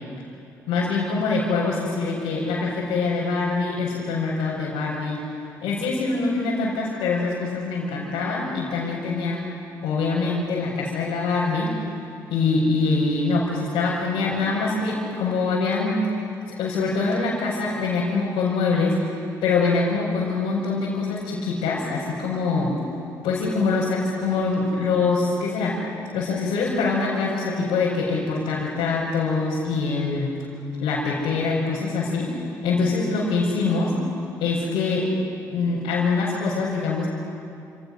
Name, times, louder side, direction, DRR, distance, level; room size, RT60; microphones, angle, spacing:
voice 1, 0.7-5.2 5.6-9.4 9.8-11.7 12.3-16.0 16.6-19.0 19.4-22.8 23.2-25.8 26.1-30.3 30.8-34.0 34.4-35.1 35.5-37.1, left 4 dB, 65° left, -7 dB, 5.7 m, -24 dB
29.0 x 28.0 x 6.4 m, 2.7 s
figure-of-eight pair, 45°, 9 cm